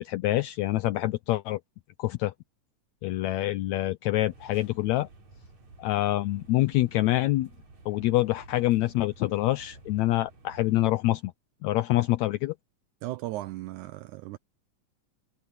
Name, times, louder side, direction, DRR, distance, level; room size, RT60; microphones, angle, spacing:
voice 1, 0.0-1.6 2.0-2.3 3.0-5.1 5.8-7.5 7.9-11.3 11.6-12.5, left 16 dB, 85° left, 1.6 m, -26 dB
sound 1, 4.2-11.0, right 3 dB, 55° right, 6.1 m, -52 dB
voice 2, 13.0-14.4, right 17 dB, 80° right, 1.9 m, -36 dB
omnidirectional pair, 3.9 m